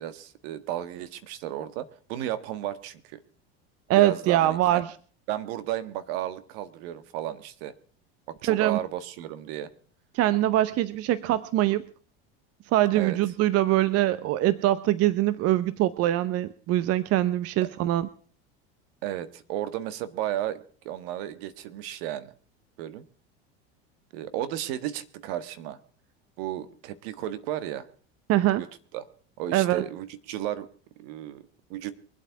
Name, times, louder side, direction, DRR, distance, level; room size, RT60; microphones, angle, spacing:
voice 1, 0.0-3.2 3.9-4.8 5.3-7.7 8.3-9.7 12.9-13.2 17.6-17.7 19.0-22.3 22.8-23.0 24.1-25.8 26.4-27.9 28.6-28.7 28.9-29.0 29.4-30.7 31.0-31.9, right 12 dB, 70° right, 14 dB, 1.5 m, -34 dB
voice 2, 3.9-4.9 8.5-8.8 10.1-11.9 12.7-18.1 28.3-28.6 29.5-29.8, right 14 dB, 50° right, 16 dB, 0.8 m, -23 dB
24.0 x 8.2 x 4.6 m, 0.43 s
supercardioid pair, 95°, 31 cm